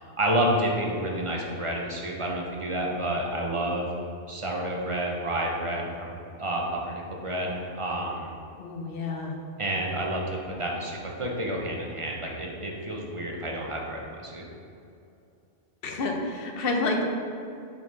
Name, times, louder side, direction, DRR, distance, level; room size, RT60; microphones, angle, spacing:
voice 1, 0.0-3.9 4.3-6.1 6.4-8.3 9.6-14.4, right 1 dB, 35° right, -1 dB, 0.6 m, -29 dB
voice 2, 8.6-9.4 15.8-17.0, left 3 dB, 60° left, 2 dB, 0.9 m, -29 dB
5.3 x 4.5 x 4.0 m, 2.6 s
omnidirectional pair, 1.2 m